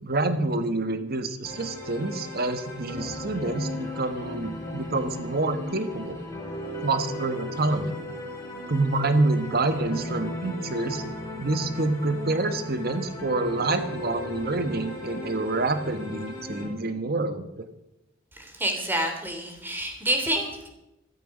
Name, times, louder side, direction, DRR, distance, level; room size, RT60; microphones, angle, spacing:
voice 1, 0.0-6.2 6.8-7.9 8.7-11.0 11.4-17.7, right 2 dB, 50° right, 9 dB, 1.5 m, -27 dB
sound 1, 1.4-16.7, left 1 dB, 20° left, 6.3 m, -37 dB
voice 2, 18.3-20.7, right 1 dB, 10° right, 4 dB, 3.2 m, -28 dB
15.0 x 14.0 x 5.4 m, 0.89 s
head